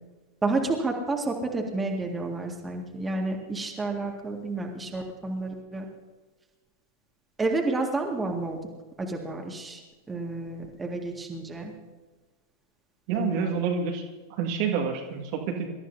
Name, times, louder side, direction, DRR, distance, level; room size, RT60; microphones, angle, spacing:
voice 1, 0.4-5.9 7.4-8.6 9.0-9.8 10.1-11.7 13.1-13.6, right 3 dB, 15° right, 1 dB, 2.0 m, -30 dB
voice 2, 13.1-14.0 14.4-15.7, right 6 dB, 45° right, 1 dB, 1.9 m, -28 dB
26.0 x 13.5 x 2.8 m, 1.3 s
figure-of-eight pair, 90°, 0 cm